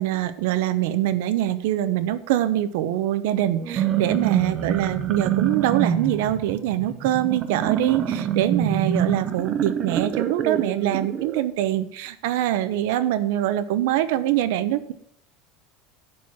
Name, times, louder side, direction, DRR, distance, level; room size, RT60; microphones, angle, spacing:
voice 1, 0.0-14.9, right 13 dB, 80° right, 13 dB, 0.8 m, -24 dB
sound 1, 3.6-11.4, right 9 dB, 30° right, 0.7 m, -26 dB
11.0 x 4.5 x 7.2 m, 0.71 s
cardioid pair, 160°, 0 cm